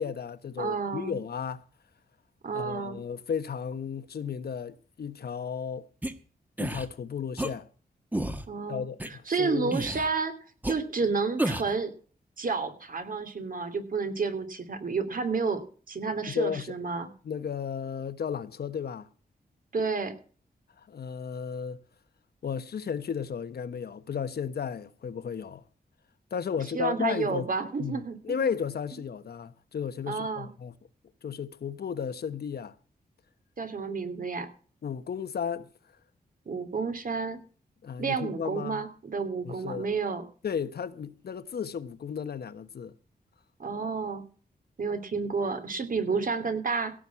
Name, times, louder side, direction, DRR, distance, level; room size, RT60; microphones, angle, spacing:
voice 1, 0.0-1.6 2.5-5.9 6.6-7.7 8.7-9.8 16.3-16.8 17.2-19.1 20.8-21.8 22.4-25.6 26.3-27.5 27.8-30.7 31.2-32.8 34.8-35.7 37.8-38.8 39.4-39.9 40.4-42.9, left 7 dB, 75° left, 1.2 m, -34 dB
voice 2, 0.6-1.2 2.4-3.0 8.5-8.8 9.3-10.3 10.7-11.9 12.4-17.1 19.7-20.1 26.7-28.4 30.1-30.5 33.6-34.5 36.5-37.4 38.0-40.2 43.6-44.2 44.8-46.9, right 4 dB, 55° right, 3.0 m, -30 dB
sound 1, 6.0-6.1 6.6-6.9 7.4-7.5 8.1-8.4 9.0-9.1 9.7-10.1 10.6-10.7 11.4-11.8, right 1 dB, 10° right, 1.5 m, -30 dB
17.0 x 6.4 x 7.2 m
wide cardioid pair, 95°, 17 cm